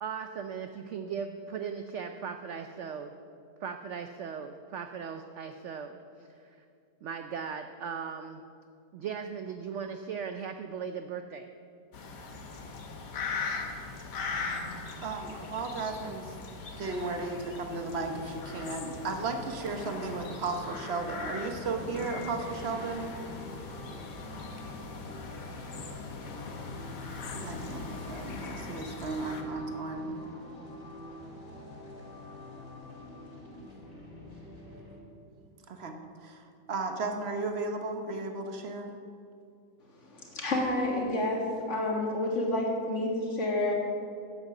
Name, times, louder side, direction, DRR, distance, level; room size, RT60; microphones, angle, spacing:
voice 1, 0.0-3.1 3.6-6.6 7.0-8.4 8.9-11.5, right 6 dB, 85° right, 7 dB, 0.6 m, -38 dB
sound 1, 11.9-29.4, left 4 dB, 75° left, 1.7 m, -40 dB
voice 2, 15.0-16.4 16.8-23.1 27.3-30.2 35.7-38.9, right 3 dB, 45° right, 5 dB, 1.0 m, -35 dB
sound 2, 18.0-35.0, left 2 dB, 20° left, 2.2 m, -46 dB
voice 3, 40.0-41.4 41.7-43.7, left 1 dB, 45° left, -1 dB, 2.1 m, -29 dB
9.0 x 8.0 x 7.0 m, 2.4 s
omnidirectional pair, 1.8 m